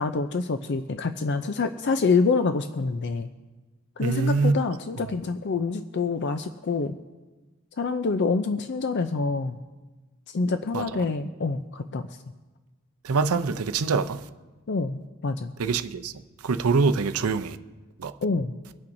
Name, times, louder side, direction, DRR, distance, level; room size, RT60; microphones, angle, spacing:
voice 1, 0.0-3.3 4.0-7.0 7.8-9.6 10.3-12.2 14.7-15.5 18.2-18.5, left 4 dB, 55° left, 0.5 m, -26 dB
voice 2, 4.0-4.5 10.7-10.8 13.0-14.2 15.6-16.1 16.4-17.6 18.0-18.1, right 4 dB, 90° right, 0.6 m, -24 dB
25.0 x 8.6 x 2.6 m
head